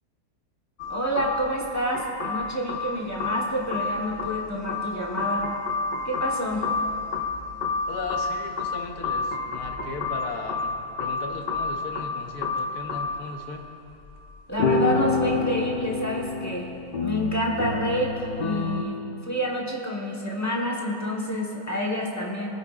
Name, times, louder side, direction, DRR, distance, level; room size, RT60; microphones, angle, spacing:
sound 1, 0.8-13.5 14.2-14.3 14.6-18.8, left 4 dB, 50° left, 0.6 m, -29 dB
voice 1, 0.9-5.5 6.0-6.7 14.5-16.7 17.0-22.5, equal, 10° left, -2 dB, 1.1 m, -28 dB
voice 2, 7.9-13.7, left 4 dB, 90° left, 3 dB, 1.4 m, -37 dB
22.0 x 9.1 x 2.4 m, 2.7 s
omnidirectional pair, 1.6 m